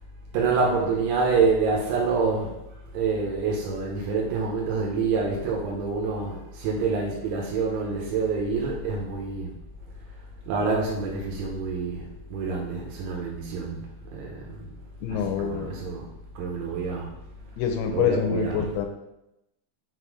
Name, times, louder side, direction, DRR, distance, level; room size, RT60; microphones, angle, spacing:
voice 1, 0.3-2.5 2.9-9.5 10.5-14.7 15.1-16.1 16.4-17.1 17.9-18.6, right 4 dB, 80° right, -2 dB, 3.3 m, -27 dB
voice 2, 15.0-15.7 17.6-18.9, left 8 dB, 85° left, 5 dB, 2.9 m, -26 dB
7.0 x 4.1 x 4.8 m, 0.87 s
omnidirectional pair, 5.5 m